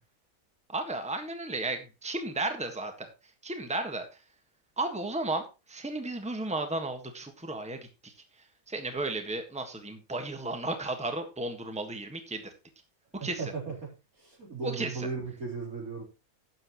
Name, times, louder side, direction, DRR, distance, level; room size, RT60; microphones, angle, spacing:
voice 1, 0.7-3.1 3.4-4.0 4.8-5.4 5.7-7.8 8.0-8.1 8.7-12.4 13.2-13.5 14.6-15.1, right 2 dB, 5° right, 6 dB, 1.5 m, -34 dB
voice 2, 13.2-13.7 14.2-16.0, right 4 dB, 80° right, -1 dB, 4.4 m, -36 dB
12.0 x 9.3 x 3.0 m, 0.28 s
omnidirectional pair, 1.5 m